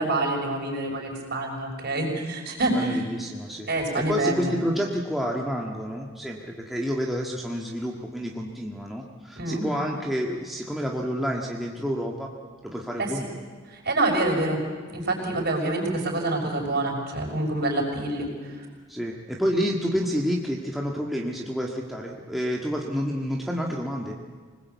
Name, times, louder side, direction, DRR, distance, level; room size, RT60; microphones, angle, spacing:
voice 1, 0.0-3.0 3.7-4.5 9.4-9.7 13.0-13.1 13.8-14.6 14.9-18.3, right 2 dB, 50° right, 1 dB, 6.2 m, -26 dB
voice 2, 2.7-12.3 12.6-13.3 18.9-24.1, equal, ahead, -2 dB, 1.7 m, -29 dB
26.0 x 20.0 x 8.3 m, 1.6 s
head